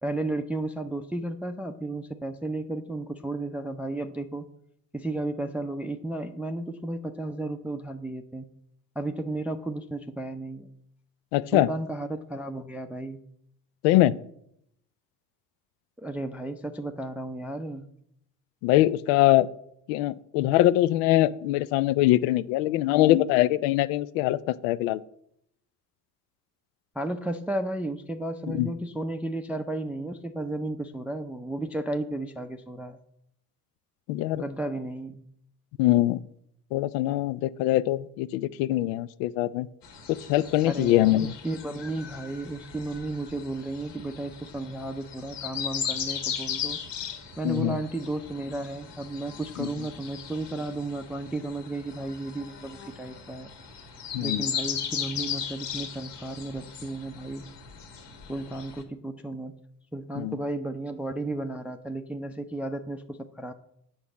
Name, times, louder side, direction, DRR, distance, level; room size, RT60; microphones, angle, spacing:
voice 1, 0.0-4.5 4.9-8.5 9.0-10.7 11.5-13.2 16.0-17.9 27.0-33.0 34.4-35.2 40.7-46.8 47.4-53.5 54.2-57.5 58.3-59.6 59.9-63.5, right 2 dB, 5° right, 7 dB, 0.5 m, -33 dB
voice 2, 11.3-11.7 13.8-14.2 18.6-19.5 19.9-25.0 28.5-28.7 34.1-34.4 35.8-36.2 36.7-39.7 40.1-41.3 47.4-47.8 49.6-49.7 54.1-54.5 60.2-60.4, left 15 dB, 75° left, 18 dB, 0.5 m, -23 dB
sound 1, 39.8-58.8, left 8 dB, 60° left, 1.7 m, -37 dB
8.1 x 6.0 x 5.1 m, 0.74 s
hypercardioid pair, 60°, 48 cm